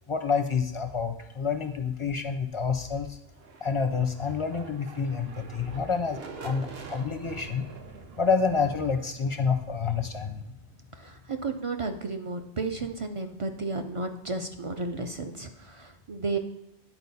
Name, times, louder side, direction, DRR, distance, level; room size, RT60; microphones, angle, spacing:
voice 1, 0.1-3.2 3.6-7.6 8.2-10.5, left 5 dB, 40° left, 6 dB, 0.4 m, -28 dB
sound 1, 3.2-11.0, right 4 dB, 65° right, 1.0 m, -46 dB
voice 2, 11.0-16.4, right 3 dB, 45° right, 5 dB, 0.4 m, -33 dB
9.8 x 4.5 x 4.1 m, 0.86 s
omnidirectional pair, 1.1 m